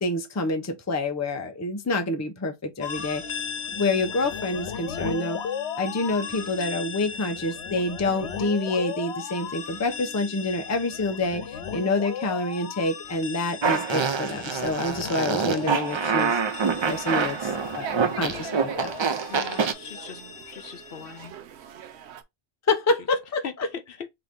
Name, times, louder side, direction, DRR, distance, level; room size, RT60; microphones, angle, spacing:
voice 1, 0.0-3.2 3.7-5.4 5.8-16.4 16.8-18.9 22.7-23.4, left 2 dB, 20° left, 0.5 m, -27 dB
sound 1, 2.8-21.3, left 7 dB, 90° left, 1.0 m, -36 dB
Fart, 13.6-19.7, right 5 dB, 50° right, 0.3 m, -26 dB
sound 2, 16.6-22.2, right 9 dB, 85° right, 0.9 m, -41 dB
voice 2, 19.3-20.2 20.5-21.3 23.4-24.1, left 7 dB, 65° left, 0.8 m, -40 dB
3.8 x 3.0 x 3.5 m
omnidirectional pair, 1.1 m